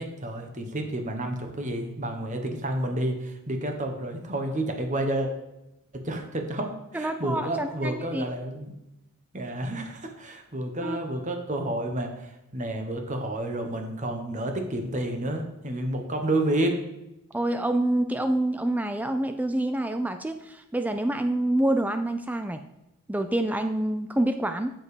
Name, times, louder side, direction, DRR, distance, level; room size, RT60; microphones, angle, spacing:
voice 1, 0.0-5.3 5.9-8.7 9.3-16.7, right 1 dB, 35° right, 4 dB, 1.2 m, -30 dB
voice 2, 6.9-8.2 10.8-11.0 17.3-22.6 23.1-24.7, right 1 dB, 5° right, 8 dB, 0.3 m, -27 dB
7.4 x 7.2 x 5.0 m, 0.89 s
head